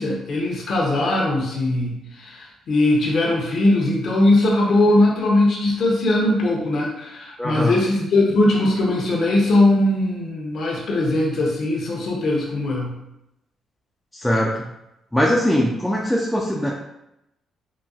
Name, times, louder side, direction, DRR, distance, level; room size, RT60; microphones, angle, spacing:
voice 1, 0.0-12.9, left 2 dB, 60° left, -3 dB, 0.7 m, -20 dB
voice 2, 7.4-7.8 14.1-14.7 15.1-16.7, equal, 5° left, -3 dB, 0.4 m, -21 dB
3.9 x 2.2 x 2.4 m, 0.86 s
cardioid pair, 90°, 0 cm